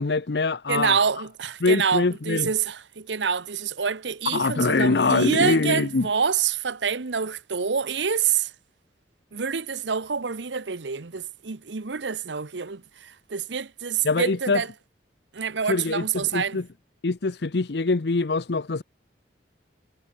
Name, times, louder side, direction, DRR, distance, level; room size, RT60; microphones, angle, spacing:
voice 1, 0.0-1.0 1.6-2.5 4.3-6.1 14.0-14.6 15.6-16.6 17.0-18.8, left 3 dB, 65° left, 0.7 m, -24 dB
voice 2, 0.7-8.5 9.3-14.7 15.3-16.6, right 6 dB, 80° right, 1.0 m, -27 dB
head